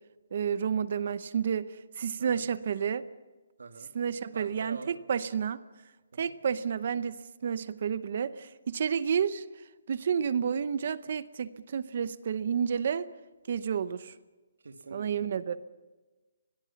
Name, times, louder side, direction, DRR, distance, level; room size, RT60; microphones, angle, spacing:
voice 1, 0.3-3.0 3.9-5.6 6.2-9.4 9.9-13.1 13.5-14.1 14.9-15.6, right 7 dB, 40° right, 15 dB, 0.8 m, -30 dB
voice 2, 2.2-2.5 3.6-3.9 4.3-4.9 6.1-6.4 14.6-15.6, right 4 dB, 85° right, 6 dB, 2.4 m, -46 dB
26.0 x 20.5 x 5.9 m, 1.2 s
hypercardioid pair, 175°, 0 cm